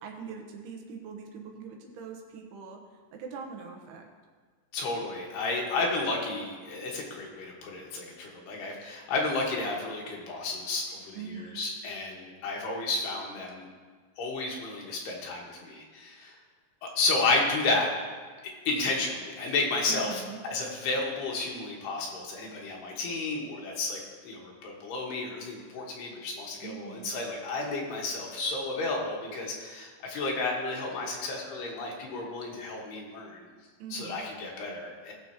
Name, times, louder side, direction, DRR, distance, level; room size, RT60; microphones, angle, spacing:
voice 1, 0.0-2.8 3.1-4.1 11.1-11.6 19.9-20.4 26.6-27.1 33.8-34.2, right 6 dB, 85° right, 2 dB, 3.2 m, -42 dB
voice 2, 4.7-13.7 14.2-16.4 16.8-17.9 18.7-33.5 33.9-35.1, left 3 dB, 85° left, -1 dB, 3.6 m, -32 dB
18.5 x 6.9 x 3.0 m, 1.5 s
omnidirectional pair, 4.6 m